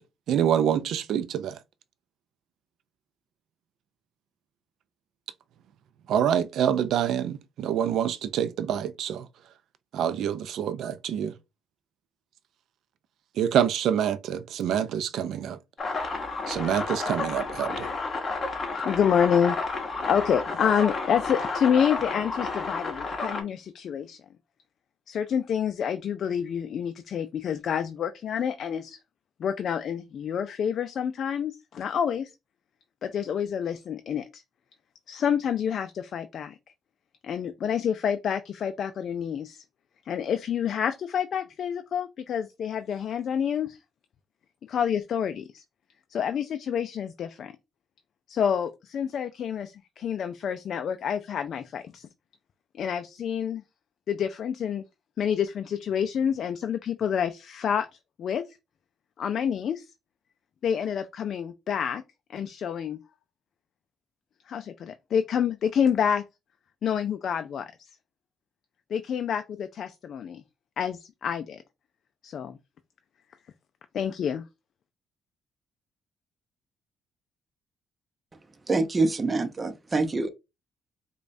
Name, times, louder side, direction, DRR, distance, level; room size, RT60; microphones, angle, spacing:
voice 1, 0.3-1.5 6.1-9.2 9.9-11.3 13.4-15.6 16.5-17.9, right 9 dB, 75° right, 0.4 m, -26 dB
sound 1, 15.8-23.4, left 3 dB, 40° left, 1.0 m, -31 dB
voice 2, 18.9-19.6 20.1-24.2 25.1-29.0 29.4-32.3 33.0-34.2 35.1-36.5 37.2-39.6 40.1-43.7 44.7-45.4 46.1-47.5 48.3-49.7 50.0-52.0 52.8-53.6 54.1-54.8 55.2-57.9 58.2-58.4 59.2-59.7 60.6-62.0 62.3-63.0 64.5-66.2 66.8-67.6 68.9-70.4 70.8-71.6 72.2-72.6 73.9-74.4, left 8 dB, 65° left, 0.3 m, -28 dB
voice 3, 78.7-80.3, right 3 dB, 25° right, 0.6 m, -25 dB
5.0 x 2.3 x 2.6 m
cardioid pair, 90°, 0 cm